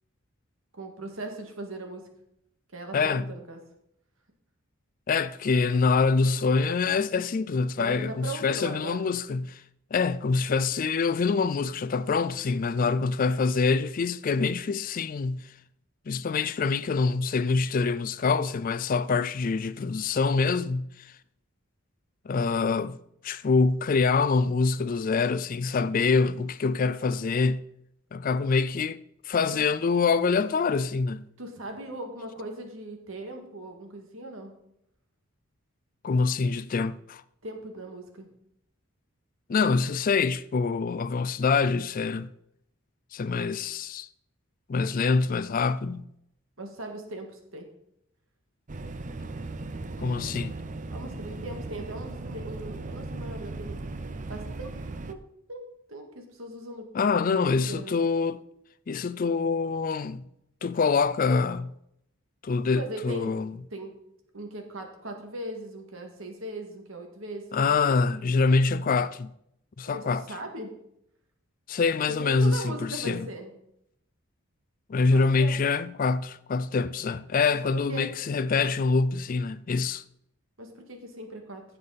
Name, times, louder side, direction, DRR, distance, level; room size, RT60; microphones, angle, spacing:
voice 1, 0.8-2.0 2.7-3.6 7.8-9.1 12.7-12.9 26.1-26.4 29.4-29.6 31.4-34.6 37.4-38.3 46.6-47.7 50.9-53.8 54.3-54.7 55.1-55.2 55.5-56.9 57.3-57.9 62.7-63.3 63.7-63.9 64.3-67.9 69.9-70.7 72.1-73.5 75.1-75.6 77.5-78.1 80.6-81.6, right 1 dB, 65° right, 2.0 m, -39 dB
voice 2, 2.9-3.3 5.1-9.6 9.9-15.4 16.1-21.1 22.3-23.0 23.2-27.6 28.1-29.0 29.2-31.3 36.0-37.2 39.5-42.3 43.1-44.1 44.7-46.1 50.0-50.6 56.9-58.4 58.9-60.2 60.6-61.7 62.4-63.5 67.5-69.3 69.8-70.2 71.7-73.3 74.9-80.0, left 4 dB, 40° left, 0.3 m, -25 dB
sound 1, 48.7-55.1, right 2 dB, 35° right, 0.5 m, -37 dB
15.0 x 6.9 x 4.1 m
head